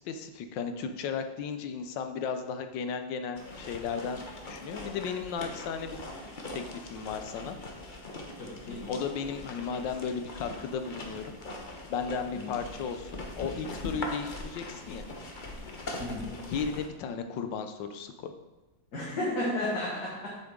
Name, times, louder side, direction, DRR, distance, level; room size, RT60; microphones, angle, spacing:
voice 1, 0.0-6.0 6.5-7.6 8.9-11.4 11.9-15.0 16.5-18.3, left 6 dB, 75° left, 8 dB, 1.4 m, -35 dB
sound 1, 3.3-16.9, left 2 dB, 35° left, 0.8 m, -41 dB
voice 2, 8.4-8.8 12.3-12.5 16.0-16.3 18.9-20.4, left 1 dB, 55° left, -7 dB, 2.2 m, -33 dB
8.5 x 6.7 x 3.7 m, 1.1 s
omnidirectional pair, 2.0 m